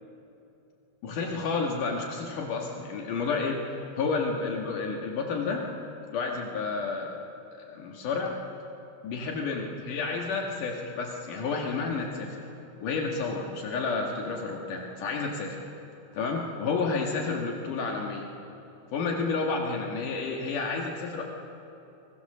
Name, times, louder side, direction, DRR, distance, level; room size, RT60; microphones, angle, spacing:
voice 1, 1.0-3.6 3.9-5.7 6.1-7.1 7.6-8.4 9.0-12.4 12.8-15.6 16.1-18.3 18.9-21.2, left 4 dB, 75° left, 0 dB, 3.3 m, -30 dB
25.5 x 20.5 x 6.8 m, 2.8 s
omnidirectional pair, 3.8 m